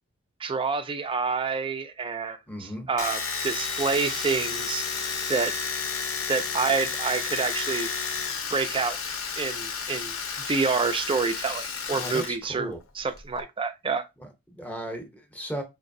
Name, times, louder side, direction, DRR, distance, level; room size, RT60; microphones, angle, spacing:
voice 1, 0.4-4.9 5.3-5.5 6.3-7.9 8.5-9.0 9.4-10.2 10.4-14.1, right 4 dB, 25° right, 0.4 m, -28 dB
voice 2, 2.5-2.9 11.9-12.8 14.2-15.6, right 1 dB, 5° left, 0.7 m, -36 dB
Domestic sounds home sounds, 3.0-12.3 12.6-13.4, left 5 dB, 60° left, 0.7 m, -31 dB
4.9 x 2.6 x 2.6 m
head